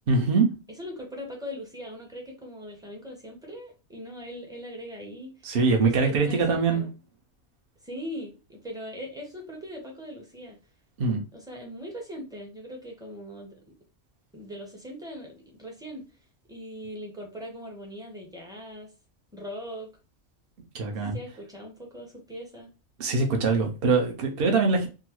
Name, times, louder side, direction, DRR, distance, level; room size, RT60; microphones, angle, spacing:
voice 1, 0.1-0.5 5.4-6.8 11.0-11.2 20.7-21.2 23.0-24.9, right 4 dB, 50° right, 0.9 m, -23 dB
voice 2, 0.8-6.9 7.8-10.6 11.3-13.6 14.3-16.0 16.5-18.9 19.3-19.9 20.9-22.7, equal, 5° right, 0.7 m, -40 dB
3.8 x 2.0 x 2.9 m
omnidirectional pair, 1.4 m